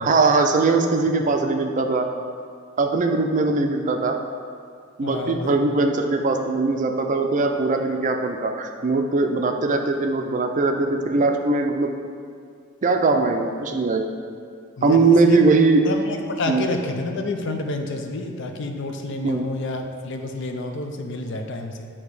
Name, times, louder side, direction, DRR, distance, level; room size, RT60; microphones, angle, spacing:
voice 1, 0.0-2.1 2.8-4.2 5.0-11.9 12.8-14.1 14.8-15.8 16.5-16.7 19.2-19.5, right 3 dB, 40° right, 4 dB, 0.4 m, -20 dB
voice 2, 5.0-5.6 14.8-15.4 15.8-21.9, left 2 dB, 60° left, 4 dB, 0.5 m, -29 dB
8.5 x 2.9 x 4.7 m, 2.2 s
head